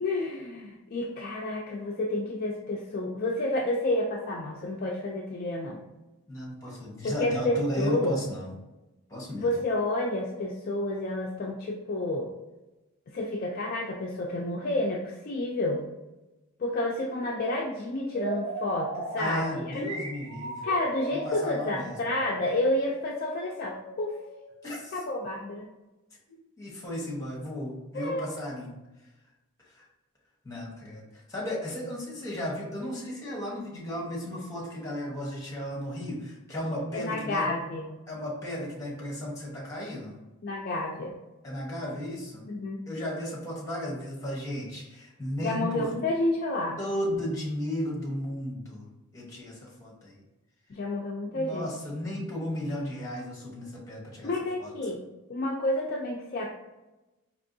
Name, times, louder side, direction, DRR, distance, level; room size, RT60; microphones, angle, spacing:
voice 1, 0.0-5.8 7.0-8.2 9.3-12.3 13.1-15.9 16.6-19.9 20.6-24.2 24.9-25.7 27.9-28.3 36.9-38.0 40.4-41.1 42.5-42.8 45.4-46.8 50.7-51.7 54.2-55.0 55.3-56.5, left 2 dB, 40° left, -1 dB, 0.4 m, -30 dB
voice 2, 6.3-8.5 9.1-9.5 19.2-20.7 21.1-22.0 24.6-25.0 26.6-28.8 29.7-29.8 30.4-37.5 38.1-40.2 41.4-42.5 42.9-45.9 46.8-48.9 49.1-50.2 51.3-54.3 54.6-54.7, equal, 15° left, -3 dB, 1.1 m, -34 dB
sound 1, 18.1-24.8, right 2 dB, 75° right, 1.0 m, -38 dB
4.3 x 2.9 x 2.6 m, 1.0 s
head